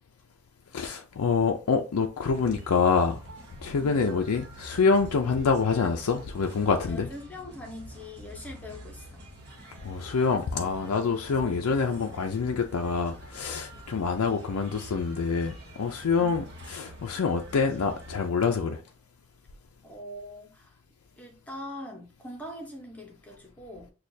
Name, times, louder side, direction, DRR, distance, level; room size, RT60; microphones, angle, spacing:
voice 1, 0.7-3.2 3.6-7.1 9.8-18.8, left 5 dB, 75° left, 0.4 m, -26 dB
sound 1, 2.2-18.3, equal, 50° right, 1.5 m, -46 dB
voice 2, 6.9-9.3 16.2-16.4 19.8-20.8 21.2-23.9, left 1 dB, 5° left, 0.8 m, -42 dB
6.3 x 2.4 x 2.7 m
head